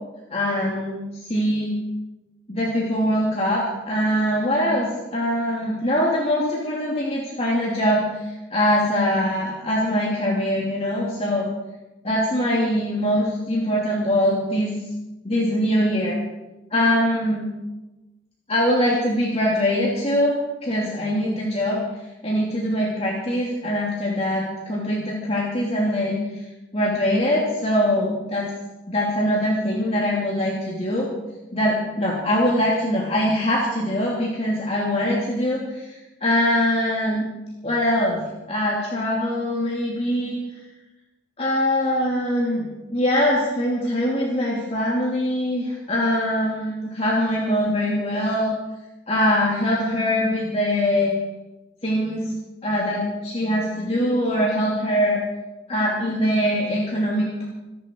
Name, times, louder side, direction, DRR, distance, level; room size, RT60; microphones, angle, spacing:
voice 1, 0.3-1.7 2.5-11.5 12.0-14.7 15.2-16.1 16.7-17.5 18.5-20.3 20.6-21.8 22.2-26.5 26.7-28.5 28.9-31.1 31.5-37.2 37.6-38.2 38.5-40.4 41.4-48.5 49.1-51.1 51.8-52.3 52.6-55.2 55.7-57.5, equal, 35° left, -4 dB, 3.0 m, -22 dB
27.0 x 11.0 x 4.7 m, 1.0 s
head